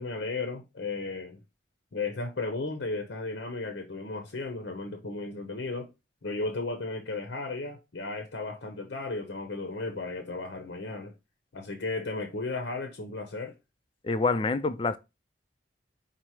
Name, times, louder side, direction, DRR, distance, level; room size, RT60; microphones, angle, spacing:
voice 1, 0.0-1.4 1.9-5.9 6.2-11.1 11.5-13.6, left 3 dB, 75° left, 0.7 m, -34 dB
voice 2, 14.0-15.0, left 3 dB, 30° left, 0.3 m, -26 dB
5.6 x 2.0 x 4.7 m
head